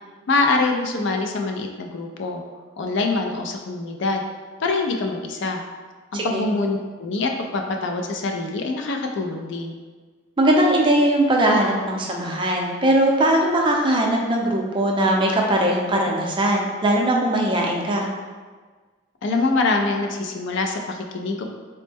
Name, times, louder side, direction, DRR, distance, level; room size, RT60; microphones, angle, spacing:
voice 1, 0.3-2.4 2.8-4.2 4.6-5.6 6.1-9.8 19.2-21.5, left 3 dB, 65° left, 3 dB, 0.4 m, -24 dB
voice 2, 6.1-6.5 10.4-18.1, right 1 dB, 25° right, 0 dB, 0.4 m, -20 dB
4.2 x 2.1 x 3.3 m, 1.4 s
head